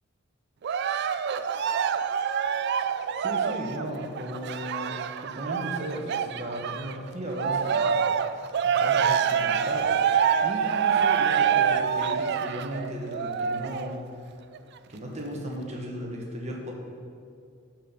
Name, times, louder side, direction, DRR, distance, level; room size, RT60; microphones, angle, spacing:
Cheering, 0.6-7.0 7.3-13.9 14.5-14.6, right 7 dB, 50° right, 0.3 m, -26 dB
voice 1, 3.2-7.9 8.6-10.0 10.4-14.1 14.9-16.7, equal, 30° right, 0 dB, 1.3 m, -36 dB
12.0 x 4.4 x 5.5 m, 2.3 s
head